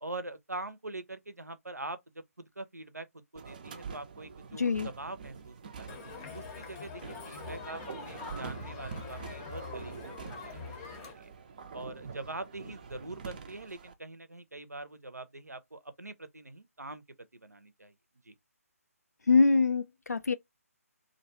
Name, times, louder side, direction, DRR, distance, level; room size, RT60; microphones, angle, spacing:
voice 1, 0.0-6.0 6.3-11.3 11.7-17.0 17.3-17.9 18.2-18.3, right 2 dB, 90° right, 0.5 m, -43 dB
sound 1, 3.4-13.9, right 6 dB, 35° right, 0.4 m, -46 dB
voice 2, 4.6-4.9 19.3-20.3, left 4 dB, 80° left, 0.4 m, -24 dB
Crowd, 5.9-11.1, left 5 dB, 20° left, 0.6 m, -44 dB
2.5 x 2.2 x 2.7 m
figure-of-eight pair, 145°, 8 cm